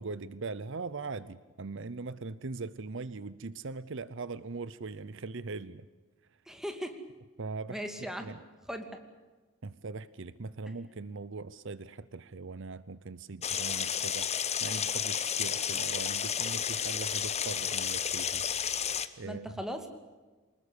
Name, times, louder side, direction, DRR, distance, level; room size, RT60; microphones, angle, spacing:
voice 1, 0.0-5.9 7.4-8.4 9.6-18.5 19.2-19.5, right 3 dB, 60° right, 17 dB, 0.8 m, -40 dB
voice 2, 6.5-7.0 7.7-8.4 8.7-9.0 19.2-19.9, equal, ahead, 6 dB, 2.5 m, -38 dB
sound 1, 13.4-19.1, left 8 dB, 30° left, 1.1 m, -32 dB
25.0 x 20.5 x 8.3 m, 1.3 s
head